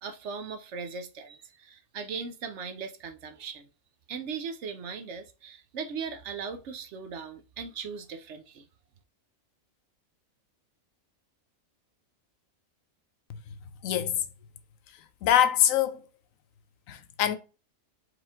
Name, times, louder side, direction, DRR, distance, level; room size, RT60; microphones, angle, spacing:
voice 1, 0.0-3.7 4.1-8.6, right 5 dB, 65° right, 0.9 m, -38 dB
voice 2, 13.8-14.2 15.2-16.0 16.9-17.4, left 10 dB, 80° left, 1.0 m, -24 dB
4.8 x 3.1 x 3.5 m
omnidirectional pair, 1.4 m